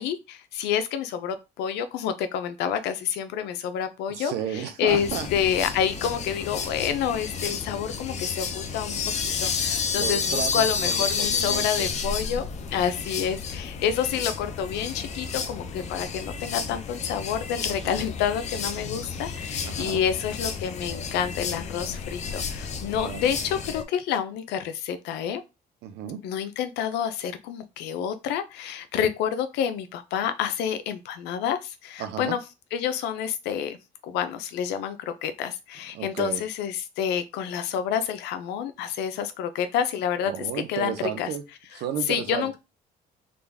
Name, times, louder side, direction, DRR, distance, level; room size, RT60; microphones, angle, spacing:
voice 1, 0.0-25.4 26.2-32.4 32.7-33.8 34.0-40.3 40.7-41.3 42.1-42.6, left 8 dB, 90° left, 0.6 m, -28 dB
voice 2, 4.0-5.3 9.9-11.9 17.8-18.1 19.6-20.0 23.0-23.3 25.8-26.2 32.0-32.4 35.9-36.4 40.3-41.4 41.7-42.6, right 9 dB, 75° right, 0.7 m, -33 dB
sound 1, 4.9-23.8, left 5 dB, 40° left, 0.6 m, -31 dB
3.8 x 2.3 x 3.4 m
cardioid pair, 110°, 17 cm